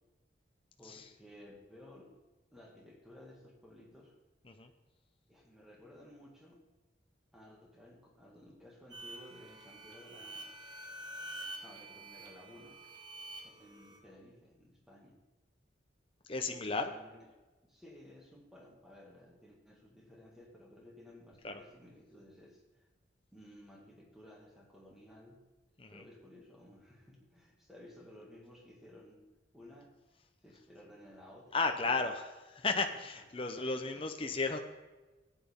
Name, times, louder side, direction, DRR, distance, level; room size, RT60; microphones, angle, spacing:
voice 1, 0.8-2.2 2.5-4.1 5.3-6.6 7.3-10.5 11.6-12.8 13.6-15.2 16.5-17.3 17.7-22.9 23.3-25.4 25.9-29.3 29.5-29.9 30.4-32.1 32.7-32.9 33.4-34.0, left 1 dB, ahead, -3 dB, 2.1 m, -56 dB
sound 1, 8.9-14.0, right 1 dB, 25° right, 1.6 m, -47 dB
voice 2, 16.3-16.8 21.4-21.6 25.8-26.0 31.5-34.6, left 3 dB, 30° left, 5 dB, 0.7 m, -34 dB
14.5 x 9.0 x 3.7 m, 1.2 s
head